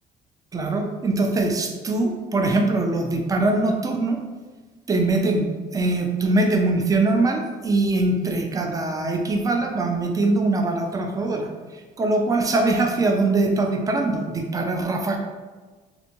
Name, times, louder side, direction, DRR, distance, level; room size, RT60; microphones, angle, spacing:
voice 1, 0.5-4.2 4.9-15.2, right 2 dB, 20° right, 3 dB, 0.4 m, -22 dB
3.4 x 2.6 x 2.9 m, 1.3 s
cardioid pair, 110°, 17 cm